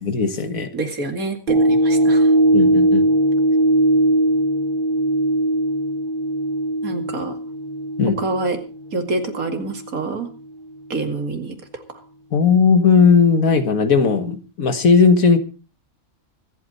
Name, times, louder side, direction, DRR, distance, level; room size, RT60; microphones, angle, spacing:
voice 1, 0.0-0.7 2.5-3.1 8.0-8.2 12.3-15.4, left 5 dB, 80° left, 9 dB, 2.0 m, -16 dB
voice 2, 0.7-2.3 6.8-7.3 8.2-8.6 8.9-10.3 10.9-11.8, right 3 dB, 85° right, 5 dB, 2.7 m, -26 dB
sound 1, 1.5-9.9 10.4-10.5, right 1 dB, 40° right, 3.7 m, -19 dB
24.5 x 8.7 x 4.2 m, 0.33 s
omnidirectional pair, 1.4 m